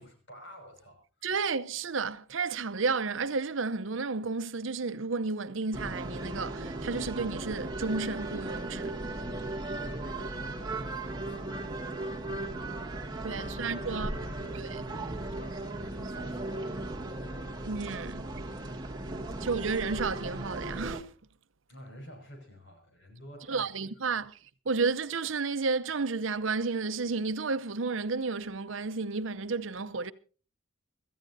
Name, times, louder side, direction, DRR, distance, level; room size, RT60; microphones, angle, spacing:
voice 1, 0.0-1.3 9.8-16.9 17.9-18.6 21.7-23.7 24.0-24.2, equal, 60° left, 5.9 m, -50 dB
voice 2, 1.2-9.0 13.2-14.1 14.7-14.8 17.6-18.2 19.4-21.1 23.5-24.4 24.7-30.1, right 4 dB, 70° right, 0.7 m, -32 dB
sound 1, 5.7-21.0, right 2 dB, 20° right, 1.5 m, -37 dB
25.0 x 14.5 x 2.7 m
head